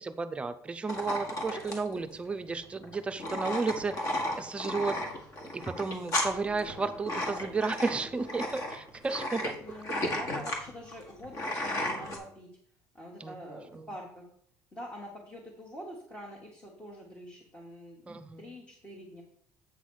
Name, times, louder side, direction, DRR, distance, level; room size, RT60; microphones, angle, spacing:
voice 1, 0.0-4.1 4.4-5.0 5.5-9.4 13.2-13.9 18.1-18.5, right 4 dB, 15° right, 9 dB, 0.5 m, -33 dB
sound 1, 0.9-12.2, left 1 dB, 45° left, 1.7 m, -34 dB
sound 2, 6.1-9.5, equal, 80° left, 3.2 m, -52 dB
voice 2, 9.6-12.5 12.9-14.3 14.7-19.2, equal, 15° left, -2 dB, 1.3 m, -45 dB
8.3 x 4.0 x 6.2 m, 0.63 s
cardioid pair, 155°, 8 cm